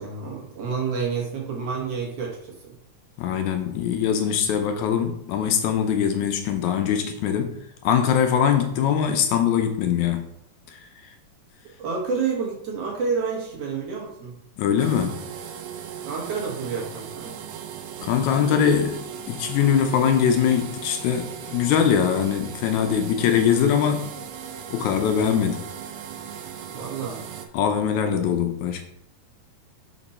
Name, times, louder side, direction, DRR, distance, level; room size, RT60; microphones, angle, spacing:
voice 1, 0.0-2.7 11.8-14.3 16.1-17.3 26.7-27.2, right 5 dB, 60° right, -2 dB, 2.1 m, -29 dB
voice 2, 3.2-7.5 7.8-10.3 10.7-10.8 14.6-15.2 18.0-24.1 24.7-25.7 27.5-28.8, left 8 dB, 80° left, 6 dB, 2.0 m, -22 dB
sound 1, 14.8-27.5, right 8 dB, 75° right, 1.5 m, -38 dB
5.3 x 5.1 x 4.2 m, 0.77 s
omnidirectional pair, 3.5 m